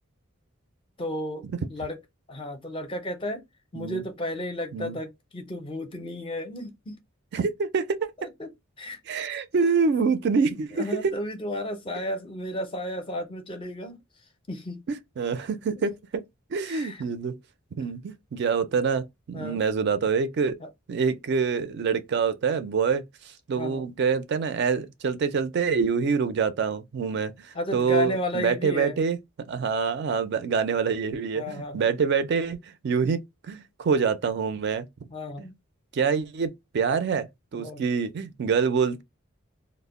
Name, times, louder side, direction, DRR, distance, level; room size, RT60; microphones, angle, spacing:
voice 1, 1.0-2.0 2.3-3.4 3.7-7.0 8.2-8.5 8.8-9.0 10.7-14.0 14.5-14.8 15.8-15.9 16.6-17.0 19.3-19.6 20.6-20.7 23.6-23.8 27.5-29.0 31.3-31.9 35.1-35.5 37.5-37.8, left 1 dB, 25° left, 0.5 m, -33 dB
voice 2, 7.3-8.0 9.1-11.1 14.9-16.2 16.5-17.4 17.7-20.6 20.9-23.0 23.5-27.3 27.7-29.2 29.5-34.9 35.4-35.5 35.9-37.3 37.5-39.0, right 5 dB, 50° right, 0.3 m, -26 dB
2.1 x 2.1 x 3.5 m
head